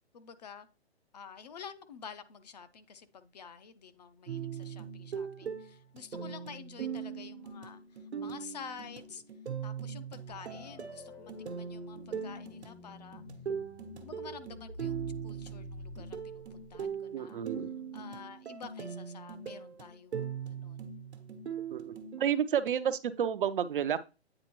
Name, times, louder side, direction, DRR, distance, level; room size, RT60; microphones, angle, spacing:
voice 1, 0.1-0.7 1.1-9.2 9.6-13.2 14.0-17.5 17.9-20.9, left 6 dB, 40° left, 0.6 m, -49 dB
sound 1, 4.3-22.2, right 7 dB, 80° right, 1.1 m, -40 dB
sound 2, 10.3-16.9, left 2 dB, 75° left, 1.9 m, -49 dB
voice 2, 17.1-17.7 21.7-24.0, right 9 dB, 55° right, 0.6 m, -31 dB
8.8 x 4.1 x 3.0 m
hypercardioid pair, 155°, 33 cm